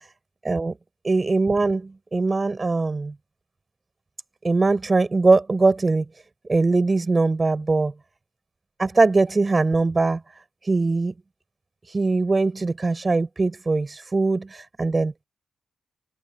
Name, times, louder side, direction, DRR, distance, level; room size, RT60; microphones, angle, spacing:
voice 1, 0.4-0.8 1.0-3.1 4.4-6.0 6.5-7.9 8.8-10.2 10.7-11.1 11.9-15.2, right 3 dB, 35° right, 6.4 m, -21 dB
open air
supercardioid pair, 50°, 0 cm